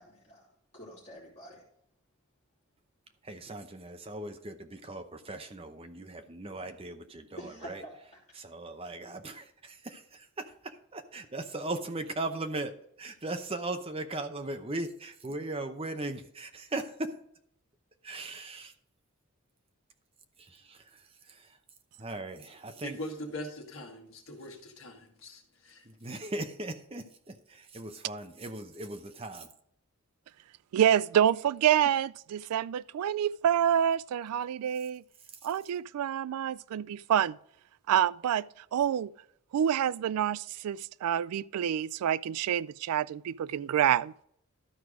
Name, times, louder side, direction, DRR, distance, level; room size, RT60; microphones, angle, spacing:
voice 1, 0.0-1.6 7.4-8.0, right 1 dB, 30° left, 3.0 m, -47 dB
voice 2, 3.2-7.8 8.3-12.7 13.0-17.1 18.0-18.7 20.4-21.6 22.0-23.0 25.8-29.5 35.3-35.5, right 2 dB, 25° right, 0.7 m, -38 dB
voice 3, 22.8-25.8, left 1 dB, 60° left, 1.7 m, -42 dB
voice 4, 30.7-35.0 35.4-37.4 37.9-38.5 38.7-39.1 39.5-44.1, right 9 dB, 90° right, 0.3 m, -27 dB
12.5 x 4.7 x 4.9 m
head